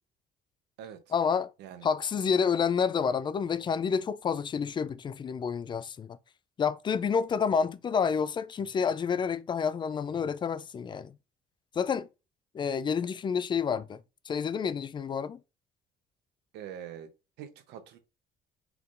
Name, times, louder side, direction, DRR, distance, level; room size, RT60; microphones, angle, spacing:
voice 1, 1.1-1.5 1.8-6.2 6.6-11.1 11.8-12.1 12.5-14.0 14.3-15.4, left 6 dB, 30° left, 0.3 m, -29 dB
voice 2, 16.5-17.1 17.4-18.0, right 9 dB, 85° right, 0.9 m, -43 dB
4.6 x 3.6 x 2.5 m
cardioid pair, 110°, 17 cm